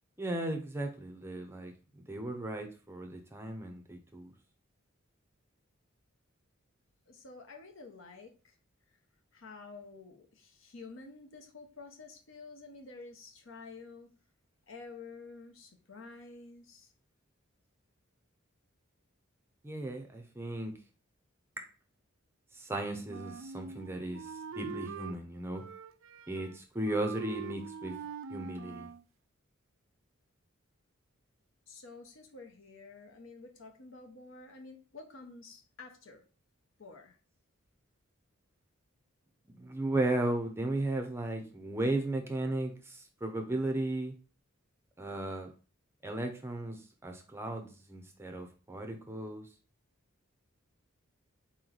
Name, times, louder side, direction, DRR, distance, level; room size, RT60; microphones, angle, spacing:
voice 1, 0.2-1.7 2.1-4.3 19.6-20.7 21.6-21.7 22.5-25.6 26.3-28.0 28.3-28.9 39.5-44.1 45.0-45.5 46.0-49.5, right 2 dB, 10° right, 4 dB, 0.6 m, -35 dB
voice 2, 7.1-8.6 9.3-14.1 14.7-16.9 31.7-36.2 36.8-37.2, left 3 dB, 65° left, 3 dB, 0.9 m, -50 dB
Wind instrument woodwind instrument, 23.1-25.2 25.5-26.6 26.8-29.0, right 5 dB, 65° right, 0.3 m, -44 dB
4.3 x 3.0 x 3.9 m, 0.36 s
head